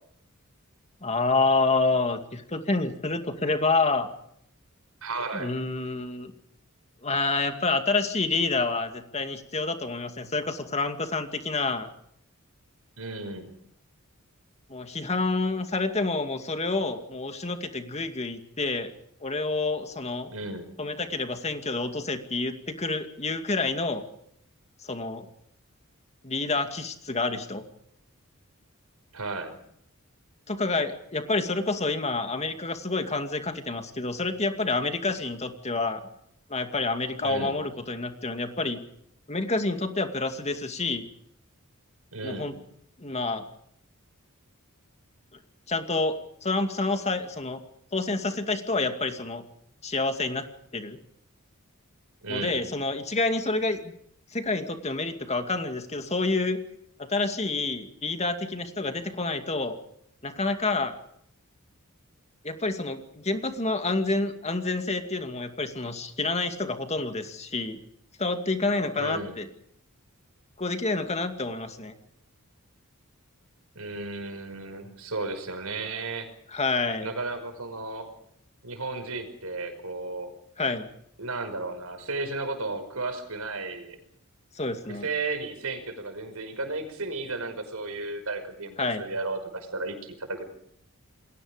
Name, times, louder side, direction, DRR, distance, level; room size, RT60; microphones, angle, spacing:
voice 1, 1.0-4.1 5.3-6.3 7.0-11.9 14.7-18.9 19.2-20.3 20.8-24.0 24.8-25.3 26.2-27.6 30.5-36.1 36.5-38.8 39.3-41.0 42.2-42.5 43.0-43.4 45.7-46.2 46.4-47.6 47.9-49.4 49.8-50.5 50.7-51.0 52.3-54.0 54.3-56.6 57.0-59.8 60.2-61.0 62.4-67.8 68.2-69.5 70.6-71.9 76.5-77.1 80.6-80.9 84.6-85.1 88.8-89.0, left 3 dB, 30° left, 7 dB, 2.4 m, -28 dB
voice 2, 5.0-5.5 13.0-13.5 20.3-20.7 29.1-29.5 37.2-37.6 42.1-42.6 52.2-52.7 68.9-69.4 73.8-76.3 77.0-78.1 78.6-80.3 81.2-84.0 85.0-90.4, right 3 dB, 80° right, 8 dB, 5.5 m, -34 dB
29.0 x 21.5 x 5.2 m, 0.72 s
head